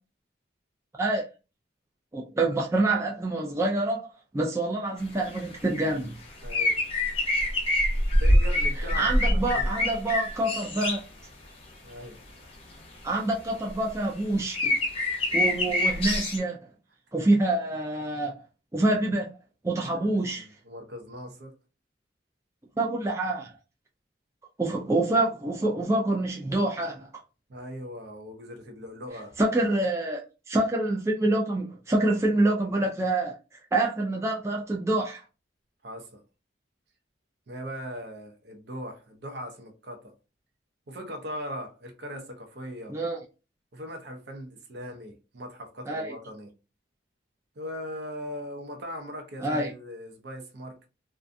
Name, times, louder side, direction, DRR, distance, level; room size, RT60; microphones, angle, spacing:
voice 1, 2.1-6.2 8.9-11.0 13.0-14.8 15.3-16.6 17.1-18.3 18.7-19.3 19.6-20.5 22.8-23.5 24.6-27.1 29.4-30.2 30.5-33.4 33.7-35.2 42.9-43.2 45.9-46.1 49.4-49.7, right 2 dB, 15° right, 0.3 m, -26 dB
sound 1, 5.3-5.8 6.3-11.0 14.4-16.4, left 1 dB, 30° left, 0.6 m, -25 dB
voice 2, 6.4-6.8 8.2-9.7 11.8-12.2 19.8-21.6 27.5-29.4 35.8-36.2 37.5-40.1 40.9-43.0 43.7-46.5 47.6-50.9, equal, 60° right, 0.6 m, -39 dB
2.4 x 2.2 x 2.5 m
head